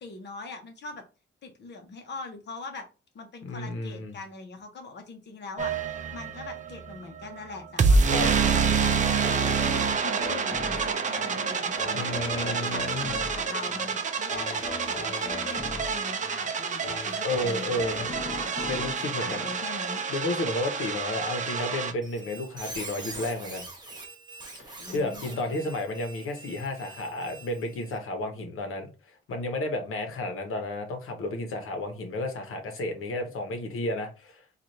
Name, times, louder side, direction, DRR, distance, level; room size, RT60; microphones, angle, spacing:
voice 1, 0.0-1.0 1.4-2.8 3.1-8.7 8.9-9.3 10.0-13.0 13.3-15.6 15.9-17.8 18.1-18.5 19.0-20.0 24.8-25.6, left 3 dB, 55° left, 1.0 m, -41 dB
voice 2, 3.4-4.1 8.1-8.3 11.9-13.1 17.2-18.1 18.7-19.5 20.1-23.7 24.6-34.4, left 2 dB, 80° left, 1.0 m, -32 dB
sound 1, 5.6-21.9, right 5 dB, 35° right, 0.5 m, -28 dB
sound 2, 9.2-20.2 20.6-20.7, left 2 dB, 30° left, 1.0 m, -39 dB
Squeak, 22.0-28.0, right 3 dB, 20° right, 1.1 m, -43 dB
4.1 x 2.5 x 3.1 m
wide cardioid pair, 140°, 21 cm